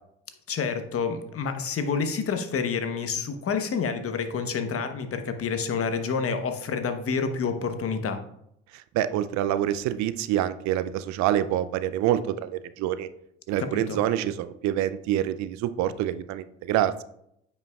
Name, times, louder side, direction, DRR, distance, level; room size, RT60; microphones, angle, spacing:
voice 1, 0.5-8.2 13.6-14.0, left 5 dB, 50° left, 7 dB, 1.0 m, -28 dB
voice 2, 8.7-13.1 13.5-17.0, right 12 dB, 70° right, 13 dB, 0.5 m, -26 dB
9.0 x 5.5 x 2.4 m, 0.76 s
hypercardioid pair, 55°, 29 cm